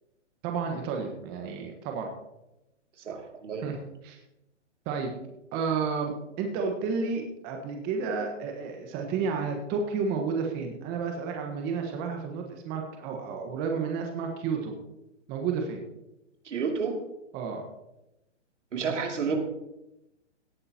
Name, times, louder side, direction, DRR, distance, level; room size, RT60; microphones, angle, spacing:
voice 1, 0.4-2.1 3.6-4.2 4.8-5.1 5.5-6.1 6.4-14.7 15.3-15.8 17.3-17.6 18.9-19.0, right 5 dB, 25° right, 3 dB, 1.4 m, -31 dB
voice 2, 3.1-3.7 16.5-17.0 18.7-19.4, right 5 dB, 75° right, 2 dB, 2.9 m, -30 dB
17.5 x 9.7 x 3.0 m, 0.91 s
hypercardioid pair, 140°, 37 cm